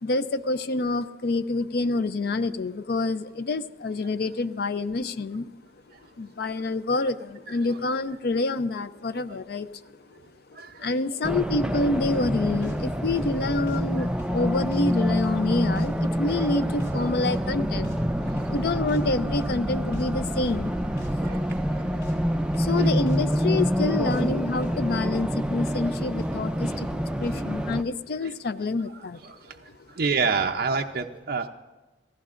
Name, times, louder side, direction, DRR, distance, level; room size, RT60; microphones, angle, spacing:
voice 1, 0.0-5.5 6.2-9.8 10.8-18.0 18.5-20.7 21.1-21.2 22.6-26.9 27.2-29.2, left 2 dB, 60° left, 13 dB, 0.5 m, -27 dB
voice 2, 10.5-10.9 18.3-18.4 21.2-21.5 21.7-21.8 22.8-22.9 28.2-28.3 29.2-31.5, right 5 dB, 55° right, 2 dB, 0.6 m, -28 dB
Race car auto racing, 11.2-27.8, equal, 5° right, 0.4 m, -27 dB
sound 1, 11.8-27.6, right 1 dB, 90° left, 2.8 m, -46 dB
sound 2, 16.3-25.7, right 1 dB, 35° left, 1.8 m, -42 dB
27.5 x 15.0 x 2.5 m, 1.2 s
head